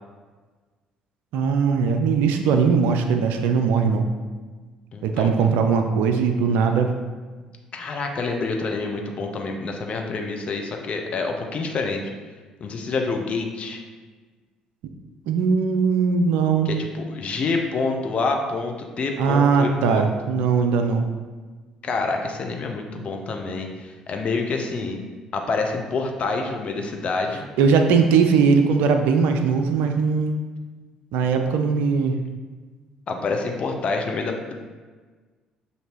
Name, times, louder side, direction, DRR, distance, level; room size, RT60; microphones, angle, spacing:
voice 1, 1.3-4.1 5.0-6.9 15.3-16.7 19.2-21.1 27.6-30.4 31.1-32.2, right 5 dB, 60° right, 6 dB, 0.4 m, -20 dB
voice 2, 4.9-5.3 7.7-12.1 12.6-13.8 16.7-20.1 21.8-25.0 25.3-27.4 33.1-34.5, left 3 dB, 40° left, 3 dB, 0.6 m, -27 dB
6.4 x 2.6 x 3.0 m, 1.4 s
figure-of-eight pair, 50°, 3 cm